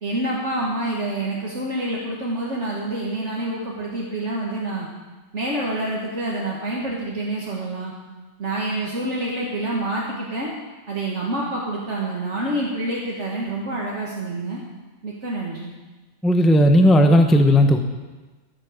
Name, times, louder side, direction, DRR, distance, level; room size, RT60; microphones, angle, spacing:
voice 1, 0.0-4.9 5.3-7.9 8.4-10.5 10.9-14.6 15.0-15.7, right 1 dB, 55° right, -4 dB, 2.1 m, -27 dB
voice 2, 16.2-17.8, equal, ahead, 5 dB, 0.7 m, -14 dB
14.5 x 8.8 x 6.4 m, 1.2 s
omnidirectional pair, 1.4 m